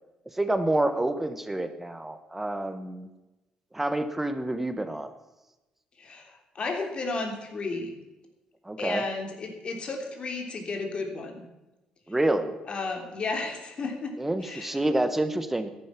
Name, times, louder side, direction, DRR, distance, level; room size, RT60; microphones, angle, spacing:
voice 1, 0.3-3.1 3.7-5.1 8.6-9.0 12.1-12.6 14.2-15.7, right 1 dB, 10° right, 9 dB, 1.2 m, -28 dB
voice 2, 6.0-7.9 8.8-11.4 12.7-14.1 14.4-14.8, left 3 dB, 45° left, 4 dB, 3.2 m, -33 dB
14.0 x 11.0 x 6.0 m, 1.0 s
cardioid pair, 105°, 2 cm